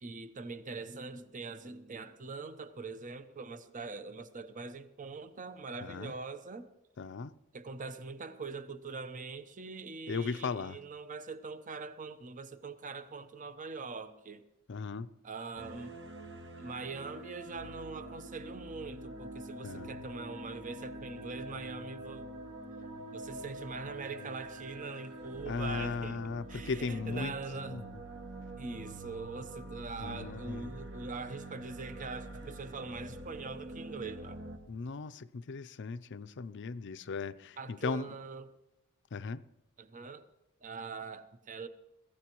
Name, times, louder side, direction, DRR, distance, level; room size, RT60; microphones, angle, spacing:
voice 1, 0.0-6.7 7.5-14.4 15.2-16.0 16.6-22.3 23.1-26.2 26.5-27.8 28.6-34.4 37.6-38.5 39.8-40.2 40.6-41.7, right 4 dB, 35° right, 0.8 m, -43 dB
voice 2, 5.8-6.1 7.0-7.3 10.1-10.8 14.7-15.1 19.6-19.9 25.5-27.3 27.7-28.0 30.0-30.7 34.7-38.1 39.1-39.4, left 4 dB, 55° left, 0.5 m, -37 dB
sound 1, 15.5-34.6, right 2 dB, 55° right, 1.6 m, -45 dB
22.5 x 16.5 x 3.0 m
head